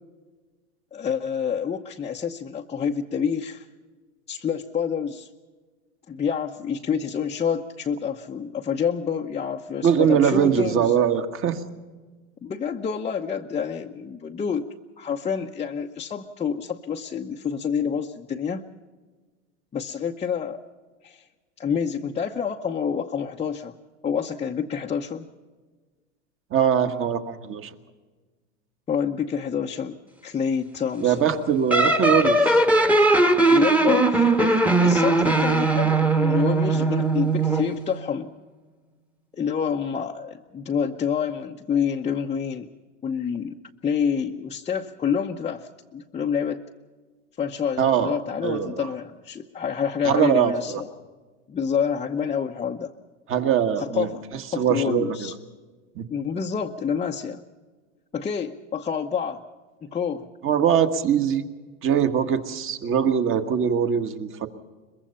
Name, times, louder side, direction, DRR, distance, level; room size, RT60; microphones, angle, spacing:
voice 1, 0.9-3.7 4.3-5.3 6.1-10.9 12.4-14.6 15.0-18.6 19.7-20.6 21.0-21.2 21.6-23.7 24.0-25.3 28.9-30.0 30.2-31.2 33.5-38.3 39.3-42.7 43.0-43.6 43.8-46.6 47.4-50.9 51.5-52.9 53.8-54.2 54.5-55.3 56.1-57.4 58.1-59.4 59.8-60.3, left 7 dB, 15° left, 1 dB, 0.8 m, -28 dB
voice 2, 9.8-11.6 26.5-27.7 31.0-32.6 47.8-48.2 48.4-48.9 50.0-50.8 53.3-55.3 55.9-56.0 60.4-61.4 61.8-64.5, right 8 dB, 30° right, 8 dB, 1.6 m, -22 dB
sound 1, 31.7-37.7, right 2 dB, 5° right, 1.3 m, -19 dB
23.0 x 21.5 x 5.7 m, 1.4 s
hypercardioid pair, 115°, 40 cm